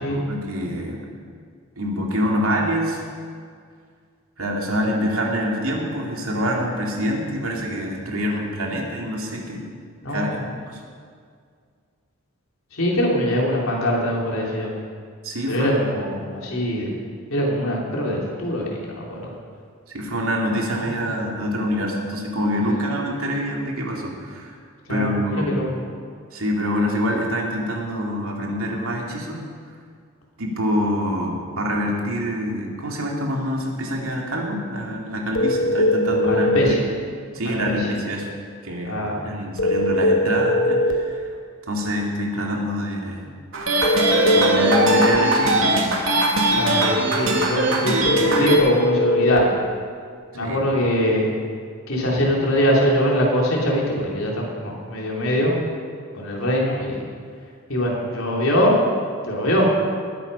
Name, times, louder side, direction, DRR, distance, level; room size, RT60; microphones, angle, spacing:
voice 1, 0.1-1.1 1.8-3.1 4.4-9.7 10.1-10.4 10.7-10.8 15.2-15.8 19.9-24.6 24.9-25.5 26.3-29.4 30.4-36.8 37.3-38.3 38.6-39.0 39.2-41.2 41.7-43.2 44.3-45.9 50.4-50.6, equal, 85° right, -1 dB, 2.6 m, -26 dB
voice 2, 10.0-10.4 12.7-14.7 15.5-17.0 17.3-19.2 24.9-25.7 36.3-36.8 37.4-37.6 38.8-39.2 46.6-49.6 50.3-51.3 51.9-55.5 56.1-57.0 57.7-58.7 59.2-59.7, equal, 80° left, -3 dB, 3.5 m, -22 dB
sound 1, 35.3-36.8 39.6-41.0 43.8-45.2 48.1-49.4, left 1 dB, 60° left, 1.0 m, -20 dB
sound 2, 43.5-48.6, right 1 dB, 70° right, 2.2 m, -20 dB
19.5 x 9.1 x 5.6 m, 2.1 s
head